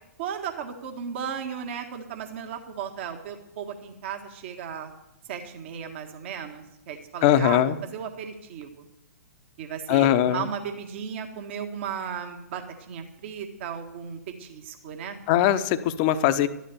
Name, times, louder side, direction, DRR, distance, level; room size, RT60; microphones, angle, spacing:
voice 1, 0.2-4.9 5.3-8.8 9.6-15.2, right 7 dB, 45° right, 5 dB, 1.6 m, -35 dB
voice 2, 7.2-7.8 9.9-10.5 15.3-16.5, left 11 dB, 35° left, 12 dB, 0.8 m, -21 dB
13.0 x 11.5 x 6.9 m, 0.83 s
figure-of-eight pair, 110°, 9 cm